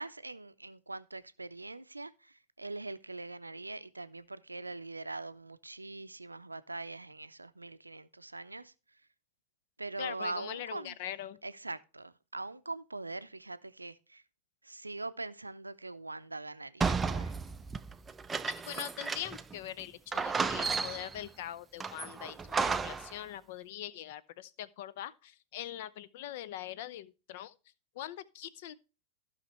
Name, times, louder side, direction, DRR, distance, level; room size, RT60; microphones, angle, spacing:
voice 1, 0.0-8.7 9.8-11.0 11.4-14.2 14.6-17.3, right 2 dB, 80° right, 0.5 m, -42 dB
voice 2, 10.0-11.4 18.5-27.5 27.9-28.7, left 12 dB, 50° left, 0.6 m, -42 dB
sound 1, 16.8-19.5 19.8-19.9 20.1-21.2 21.8-23.1, right 4 dB, 15° right, 0.4 m, -33 dB
15.0 x 5.7 x 3.2 m
figure-of-eight pair, 90°, 0 cm